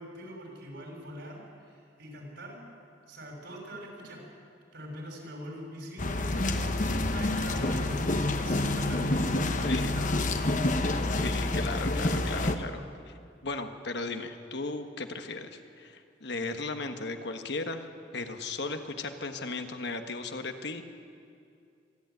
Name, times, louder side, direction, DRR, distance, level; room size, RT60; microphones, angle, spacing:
voice 1, 0.0-2.6 3.1-4.3 4.7-10.6, equal, 70° right, 0 dB, 6.1 m, -43 dB
sound 1, 6.0-12.6, left 2 dB, 45° left, 1.1 m, -28 dB
voice 2, 11.0-12.8 13.4-20.8, left 3 dB, 65° left, 6 dB, 1.4 m, -36 dB
25.0 x 12.5 x 9.3 m, 2.4 s
head